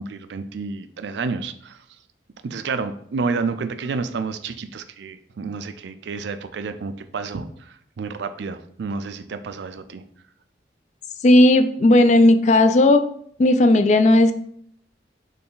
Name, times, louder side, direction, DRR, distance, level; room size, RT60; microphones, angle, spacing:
voice 1, 0.0-1.8 2.4-10.0, right 4 dB, 65° right, 10 dB, 0.4 m, -30 dB
voice 2, 11.2-13.0 13.4-14.3, left 1 dB, 35° left, 9 dB, 0.3 m, -14 dB
4.1 x 3.3 x 3.8 m, 0.65 s
head